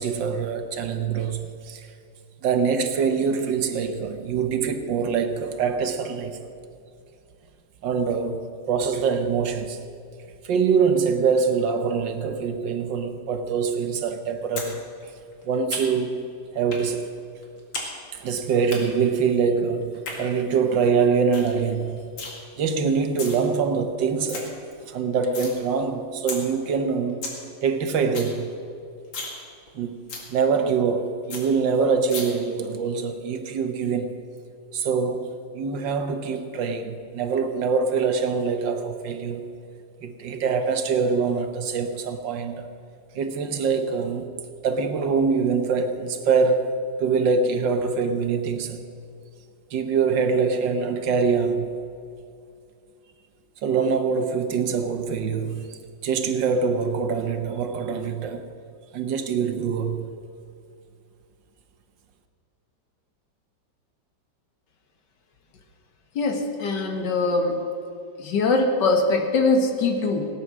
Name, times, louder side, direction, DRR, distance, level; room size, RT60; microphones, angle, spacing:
voice 1, 0.0-1.9 2.4-6.5 7.8-9.9 10.4-14.9 15.4-17.1 18.1-22.1 22.6-24.5 24.9-27.3 27.6-28.5 29.8-34.2 34.7-39.5 40.0-42.7 43.1-44.3 44.6-46.7 47.0-48.8 49.7-51.8 53.6-58.5 58.9-60.1, right 5 dB, 75° right, 1.7 m, -24 dB
sound 1, 14.6-14.7 15.0-16.1 16.7-16.9 17.2-17.9 18.1-18.8 19.8-20.2 20.6-20.7 21.0-21.1 21.3-21.5 21.8-22.3 22.9-23.4 23.8-23.9 24.1-24.4 24.8-25.5 25.9-26.0 26.3-26.4 26.8-26.9 27.0-27.4 27.7-27.8 28.0-28.3 28.6-28.7 29.0-29.4 29.7-29.8 30.1-30.3 30.7-30.8 31.0-31.1 31.3-31.4 32.1-32.2, left 3 dB, 85° left, 2.8 m, -33 dB
voice 2, 66.2-67.6 68.2-70.3, left 3 dB, 65° left, 1.9 m, -22 dB
17.5 x 9.6 x 6.1 m
omnidirectional pair, 2.0 m